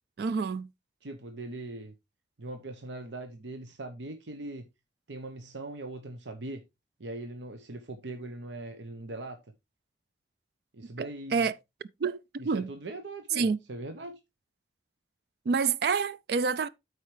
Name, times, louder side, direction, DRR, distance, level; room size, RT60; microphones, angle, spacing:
voice 1, 0.2-0.7 11.0-11.6 12.0-12.7 13.4-13.6 15.5-16.7, right 5 dB, 60° right, 0.4 m, -28 dB
voice 2, 1.0-1.9 2.4-4.6 5.1-6.6 7.0-9.5 10.7-11.5 12.4-14.2, right 2 dB, 90° right, 0.9 m, -40 dB
13.0 x 4.7 x 3.2 m
head